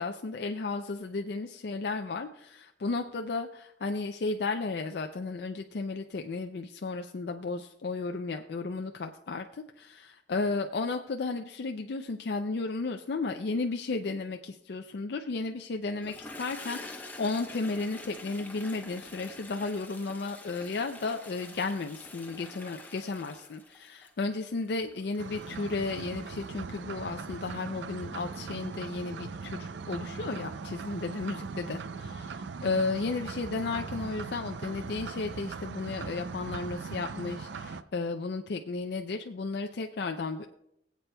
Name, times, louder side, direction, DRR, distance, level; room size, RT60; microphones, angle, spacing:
voice 1, 0.0-9.4 9.9-10.0 10.3-40.5, left 3 dB, 65° left, 5 dB, 0.4 m, -34 dB
Toilet flush, 15.9-26.5, left 2 dB, 10° left, 0.9 m, -47 dB
sound 1, 25.2-37.8, right 4 dB, 90° right, 0.5 m, -40 dB
21.0 x 8.2 x 2.2 m, 0.80 s
head